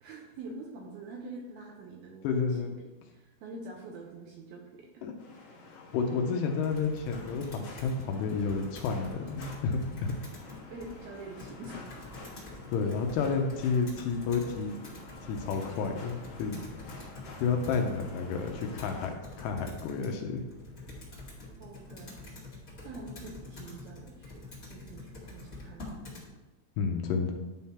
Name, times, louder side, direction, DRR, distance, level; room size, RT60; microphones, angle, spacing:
voice 1, 0.0-2.7 3.1-5.5 10.7-12.0 21.6-22.3 22.8-26.2, right 2 dB, 75° right, 0 dB, 2.3 m, -46 dB
voice 2, 2.2-2.8 5.0-5.1 5.7-10.1 12.7-14.8 15.2-16.6 17.4-20.4 26.8-27.3, left 5 dB, 80° left, 3 dB, 2.7 m, -31 dB
sound 1, 5.2-19.1, left 2 dB, 55° left, 2.8 m, -49 dB
Computer keyboard, 6.6-26.3, left 2 dB, 35° left, 1.4 m, -47 dB
11.5 x 3.8 x 4.2 m, 1.1 s
omnidirectional pair, 5.2 m